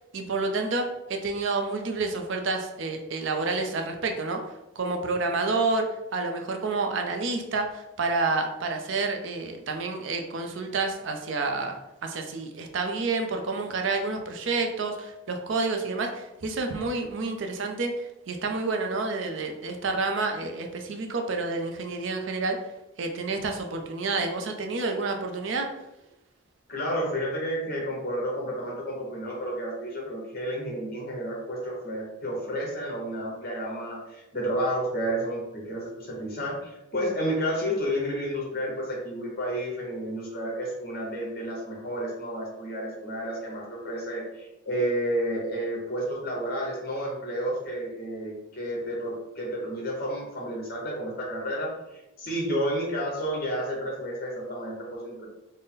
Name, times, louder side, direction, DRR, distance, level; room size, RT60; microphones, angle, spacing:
voice 1, 0.1-4.4 4.8-17.9 18.3-22.6 23.0-25.7, right 3 dB, 60° right, 4 dB, 0.5 m, -29 dB
voice 2, 26.7-55.3, equal, 45° left, -2 dB, 1.1 m, -31 dB
3.9 x 2.1 x 3.8 m, 0.94 s
head